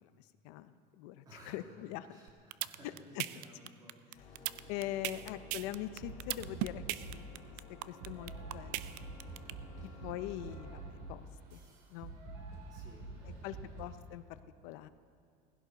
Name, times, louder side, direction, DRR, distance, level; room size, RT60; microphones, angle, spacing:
voice 1, 0.0-2.2 2.8-3.2 4.7-7.5 7.9-9.0 10.0-11.6 11.9-12.1 13.4-14.9, left 13 dB, 75° left, 12 dB, 0.7 m, -43 dB
voice 2, 1.2-1.6 2.0-5.4 9.7-10.1 12.7-13.9, equal, 20° right, -2 dB, 2.6 m, -59 dB
sound 1, 2.3-9.5, right 17 dB, 85° right, 0.5 m, -37 dB
sound 2, 4.1-10.8, left 2 dB, 45° left, 4.4 m, -55 dB
sound 3, 6.0-7.3 8.0-14.0, right 3 dB, 70° right, 3.0 m, -47 dB
18.0 x 16.0 x 4.1 m, 2.3 s
cardioid pair, 175°, 19 cm